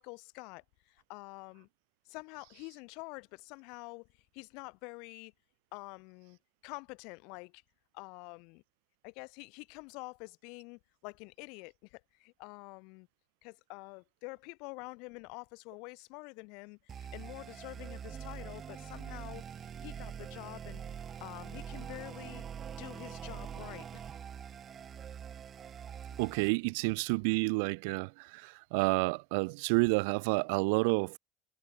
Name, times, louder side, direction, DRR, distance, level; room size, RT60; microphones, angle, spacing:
voice 1, 0.0-1.7 2.1-4.1 4.3-5.3 5.7-6.4 6.6-7.6 7.9-8.6 9.0-13.1 13.4-20.8 21.2-22.4 22.7-24.0, left 31 dB, 60° left, 4.0 m, -47 dB
sound 1, 16.9-26.5, right 8 dB, 25° right, 0.4 m, -44 dB
voice 2, 26.2-31.2, right 31 dB, 75° right, 0.8 m, -30 dB
cardioid pair, 180°, 0 cm